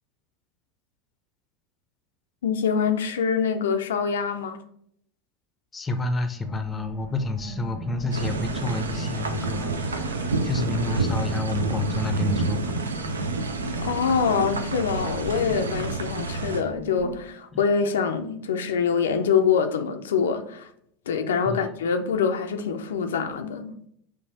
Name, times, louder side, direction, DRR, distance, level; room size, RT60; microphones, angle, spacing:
voice 1, 2.4-4.6 13.8-20.7 21.1-23.7, left 6 dB, 75° left, 0.4 m, -25 dB
voice 2, 5.7-12.8 21.5-21.7, left 2 dB, 20° left, 0.5 m, -29 dB
sound 1, 6.4-17.3, right 1 dB, 25° right, 1.2 m, -40 dB
sound 2, 8.1-16.6, right 3 dB, 85° right, 0.4 m, -28 dB
5.7 x 2.5 x 2.7 m
hypercardioid pair, 85°, 0 cm